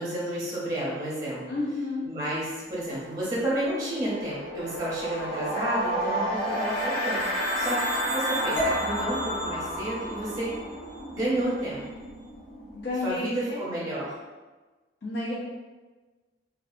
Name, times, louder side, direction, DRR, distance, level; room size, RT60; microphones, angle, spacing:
voice 1, 0.0-1.4 2.1-10.6 11.1-11.8 13.0-14.2, right 1 dB, 20° right, -6 dB, 0.6 m, -31 dB
voice 2, 1.5-2.1 12.7-13.6 15.0-15.3, left 2 dB, 65° left, -6 dB, 0.6 m, -31 dB
sound 1, 2.5-2.7 3.0-13.5, equal, 85° left, 1.1 m, -32 dB
sound 2, 6.5-11.0, right 4 dB, 80° right, 0.4 m, -39 dB
sound 3, 8.6-12.7, equal, 20° left, 0.8 m, -37 dB
2.7 x 2.2 x 2.4 m, 1.3 s
head